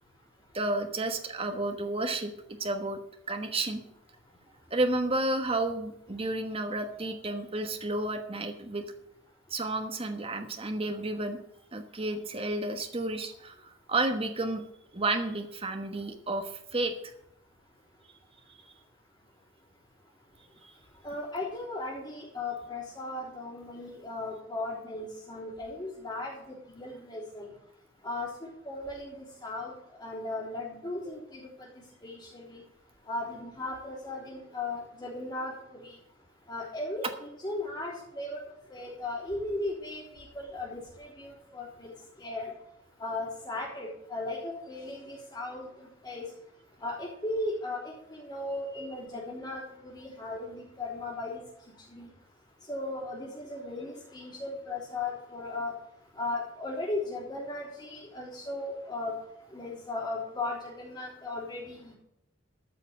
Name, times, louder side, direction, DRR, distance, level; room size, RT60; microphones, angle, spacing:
voice 1, 0.5-2.3 2.6-3.0 3.3-3.8 4.7-8.8 9.5-11.4 11.7-14.6 14.9-17.1 20.6-20.7, right 2 dB, 30° right, 5 dB, 1.3 m, -31 dB
voice 2, 21.0-27.5 28.0-29.7 30.0-31.7 32.0-32.6 33.1-35.9 36.5-38.4 38.7-41.9 42.2-42.5 43.0-46.3 46.8-51.4 51.9-52.1 52.7-55.7 56.2-59.1 59.5-62.0, left 2 dB, 20° left, -9 dB, 3.6 m, -37 dB
13.5 x 5.9 x 7.3 m, 0.77 s
head